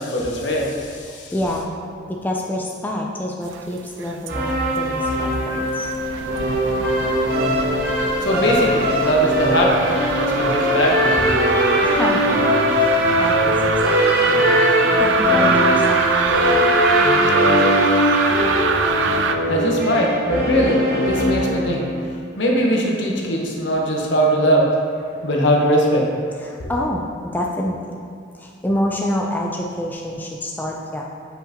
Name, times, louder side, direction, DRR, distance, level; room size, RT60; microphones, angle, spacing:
voice 1, 0.0-0.8 8.2-11.2 19.5-21.8 22.4-24.7 25.2-26.1, equal, 75° left, -1 dB, 1.0 m, -20 dB
voice 2, 1.0-1.7 2.1-5.9 11.8-12.3 12.7-14.5 14.8-16.9 26.4-28.0 28.3-31.0, left 1 dB, 10° left, -1 dB, 0.4 m, -27 dB
sound 1, 3.5-4.4 4.6-19.4, right 5 dB, 85° right, 0.4 m, -24 dB
sound 2, 4.3-22.0, equal, 50° right, 1.2 m, -20 dB
7.3 x 5.5 x 2.9 m, 2.3 s
head